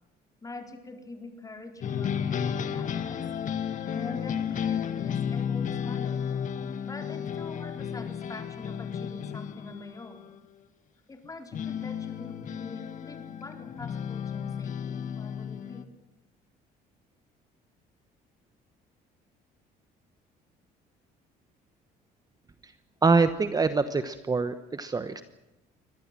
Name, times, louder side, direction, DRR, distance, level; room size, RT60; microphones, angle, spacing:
voice 1, 0.4-3.2 3.9-6.3 6.8-10.3 11.1-15.9, left 2 dB, 20° left, 4 dB, 4.3 m, -44 dB
sound 1, 1.8-10.3 11.5-15.8, left 8 dB, 50° left, 1.7 m, -33 dB
voice 2, 23.0-25.2, right 4 dB, 20° right, 11 dB, 1.1 m, -25 dB
24.0 x 18.5 x 7.6 m, 0.96 s
cardioid pair, 110°, 17 cm